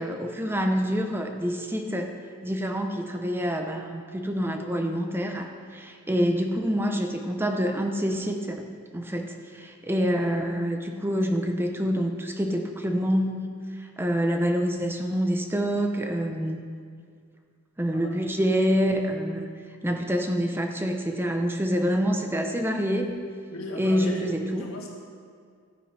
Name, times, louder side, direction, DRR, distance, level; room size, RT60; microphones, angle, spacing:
voice 1, 0.0-2.1 2.4-8.7 8.9-13.5 14.0-16.6 17.8-19.5 19.8-23.2 23.7-24.7, equal, 10° right, 4 dB, 0.7 m, -26 dB
voice 2, 23.5-24.9, equal, 80° left, -2 dB, 1.8 m, -37 dB
13.5 x 9.3 x 3.3 m, 2.2 s
head